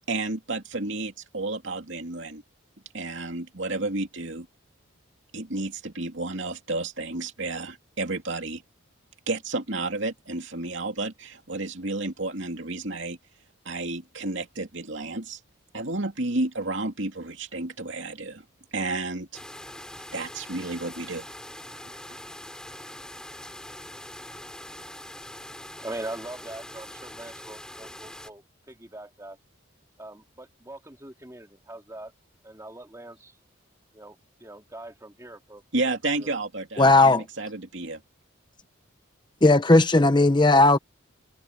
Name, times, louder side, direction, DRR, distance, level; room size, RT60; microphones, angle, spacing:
voice 1, 0.1-2.4 2.9-4.5 5.3-8.6 9.3-13.2 13.6-15.4 15.7-18.4 18.7-19.4 20.1-21.3 35.7-38.0, right 2 dB, 60° right, 2.8 m, -31 dB
sound 1, 19.3-28.3, left 1 dB, 5° left, 3.0 m, -43 dB
voice 2, 25.8-29.4 30.0-32.1 32.4-33.3 33.9-35.6 36.2-36.4, right 1 dB, 15° right, 2.4 m, -41 dB
voice 3, 36.8-37.2 39.4-40.8, left 2 dB, 20° left, 0.7 m, -16 dB
head